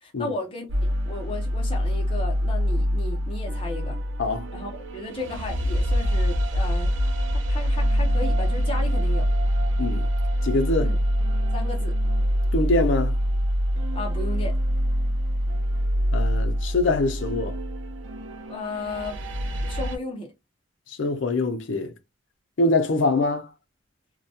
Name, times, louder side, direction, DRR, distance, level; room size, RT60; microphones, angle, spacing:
voice 1, 0.0-4.0 4.5-6.9 7.3-9.3 10.8-11.0 11.5-12.0 13.9-14.6 18.5-19.2 19.6-20.3, left 2 dB, 25° left, 0.7 m, -34 dB
sound 1, 0.7-20.0, equal, 75° right, 0.4 m, -25 dB
voice 2, 10.4-10.9 12.5-13.2 16.1-17.6 21.0-21.9 22.6-23.5, left 2 dB, 65° left, 0.5 m, -24 dB
2.2 x 2.1 x 2.7 m
head